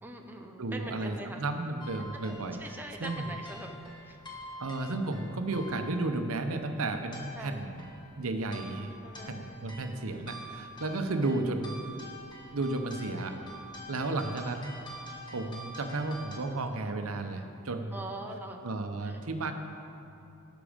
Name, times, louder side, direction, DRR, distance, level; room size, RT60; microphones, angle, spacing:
voice 1, 0.0-1.4 2.6-3.7 4.0-4.2 7.4-7.6 9.0-9.4 11.1-11.4 17.9-18.7 19.0-19.2, right 1 dB, 10° right, 2 dB, 0.7 m, -42 dB
voice 2, 0.6-2.6 3.0-3.4 4.6-7.9 8.2-8.9 9.3-11.8 12.5-13.4 13.9-14.8 15.3-18.0 18.6-19.5, right 2 dB, 70° right, 6 dB, 0.8 m, -33 dB
sound 1, 1.8-16.4, equal, 20° left, 1.3 m, -47 dB
16.5 x 6.1 x 5.1 m, 2.8 s
head